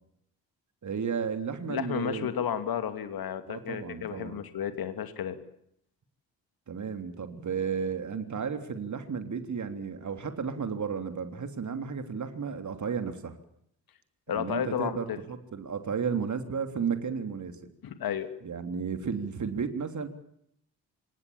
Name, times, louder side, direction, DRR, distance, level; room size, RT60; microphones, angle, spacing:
voice 1, 0.8-2.3 3.5-4.4 6.7-13.3 14.3-17.6 18.4-20.1, right 6 dB, 40° right, 8 dB, 3.4 m, -33 dB
voice 2, 1.7-5.4 14.3-15.2 17.8-18.3, left 9 dB, 50° left, 10 dB, 2.8 m, -32 dB
28.0 x 26.0 x 7.3 m, 0.72 s
figure-of-eight pair, 40°, 46 cm